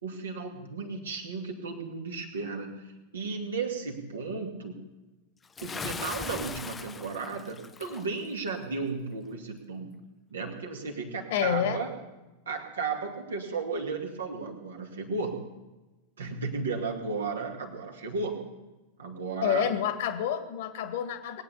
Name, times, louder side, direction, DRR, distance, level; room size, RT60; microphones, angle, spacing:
voice 1, 0.0-4.8 5.6-10.0 10.3-11.9 12.5-15.5 16.2-18.5 19.0-19.7, right 4 dB, 70° right, 2 dB, 2.4 m, -34 dB
Bathtub (filling or washing) / Splash splatter, 5.6-8.1, left 5 dB, 15° left, 0.6 m, -39 dB
voice 2, 11.3-11.8 19.4-21.4, left 9 dB, 55° left, 9 dB, 1.7 m, -28 dB
21.0 x 8.9 x 6.9 m, 1.1 s
figure-of-eight pair, 90°, 0 cm